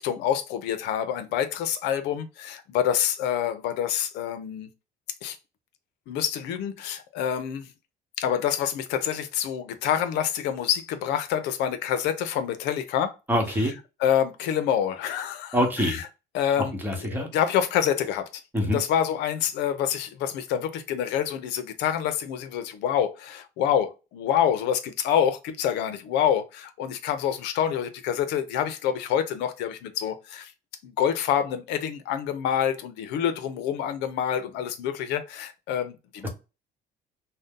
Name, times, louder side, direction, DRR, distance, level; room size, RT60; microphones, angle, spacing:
voice 1, 0.0-4.7 5.2-5.4 6.1-7.7 8.2-13.1 14.0-16.1 16.3-16.7 17.1-18.3 18.7-30.5 30.8-36.3, left 9 dB, 85° left, 0.5 m, -27 dB
voice 2, 13.3-13.7 15.5-16.0 16.8-17.3 18.5-18.8 36.2-36.3, equal, 10° right, 1.0 m, -24 dB
2.6 x 2.1 x 3.5 m
cardioid pair, 110°, 17 cm